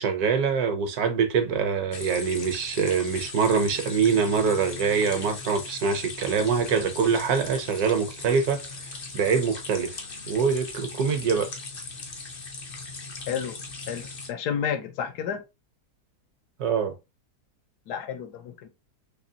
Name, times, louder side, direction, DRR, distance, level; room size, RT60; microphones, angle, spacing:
voice 1, 0.0-8.6 9.1-10.0 10.3-11.5 16.6-16.9, right 6 dB, 70° right, 1.2 m, -24 dB
sound 1, 1.9-14.3, left 3 dB, 50° left, 0.7 m, -39 dB
voice 2, 13.3-13.6 13.9-15.4 17.9-18.7, left 8 dB, 75° left, 1.2 m, -31 dB
4.1 x 2.9 x 2.6 m
omnidirectional pair, 1.8 m